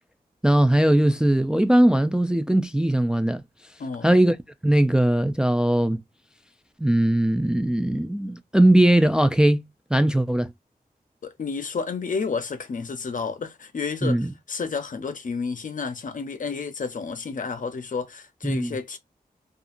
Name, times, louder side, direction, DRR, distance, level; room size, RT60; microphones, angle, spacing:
voice 1, 0.4-3.4 4.0-4.4 4.6-6.0 6.8-10.5 14.0-14.3 18.4-18.7, right 1 dB, 5° right, 0.3 m, -20 dB
voice 2, 3.8-4.2 11.2-19.0, left 5 dB, 55° left, 0.6 m, -31 dB
2.7 x 2.3 x 2.5 m
wide cardioid pair, 85°, 16 cm